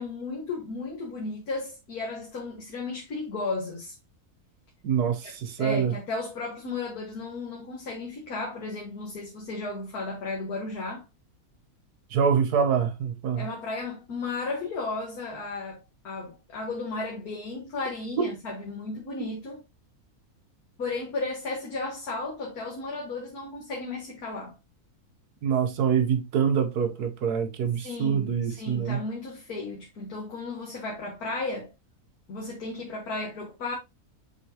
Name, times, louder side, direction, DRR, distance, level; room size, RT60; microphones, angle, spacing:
voice 1, 0.0-3.9 5.2-5.3 5.6-11.1 13.4-19.6 20.8-24.6 27.8-31.7 32.3-33.8, left 3 dB, 75° left, 2.1 m, -34 dB
voice 2, 4.8-5.9 12.1-13.5 18.2-18.3 25.4-29.0, right 7 dB, 85° right, 1.5 m, -25 dB
6.9 x 4.9 x 2.8 m
omnidirectional pair, 1.6 m